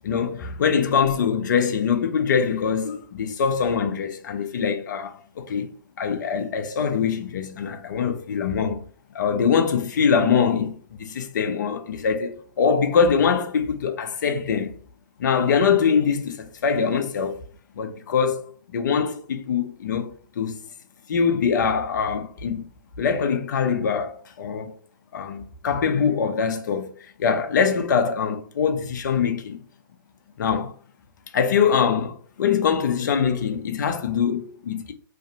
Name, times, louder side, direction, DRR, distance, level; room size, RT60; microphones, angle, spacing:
voice 1, 0.0-5.7 6.0-8.8 9.1-14.7 15.2-17.3 17.8-20.6 21.1-22.6 23.0-24.8 25.1-26.9 27.2-29.6 30.4-30.7 31.3-34.9, left 6 dB, 60° left, 0.5 m, -23 dB
2.5 x 2.4 x 2.4 m
hypercardioid pair, 130°, 12 cm